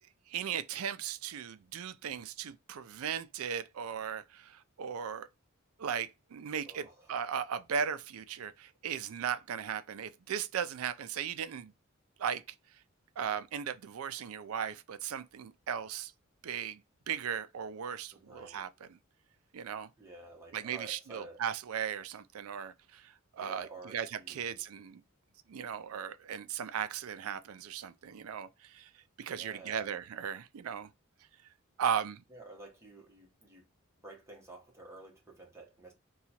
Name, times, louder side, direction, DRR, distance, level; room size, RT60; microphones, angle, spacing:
voice 1, 0.3-5.3 5.8-11.7 12.2-12.4 13.2-16.1 16.4-16.8 17.1-18.7 19.5-19.9 20.5-25.0 25.5-28.9 29.2-30.9 31.8-32.2, right 8 dB, 90° right, 0.4 m, -37 dB
voice 2, 6.6-7.2 18.1-18.6 20.0-21.4 23.4-24.6 29.3-29.9 32.3-33.6 34.0-35.9, right 3 dB, 15° right, 1.1 m, -51 dB
2.8 x 2.3 x 4.1 m
head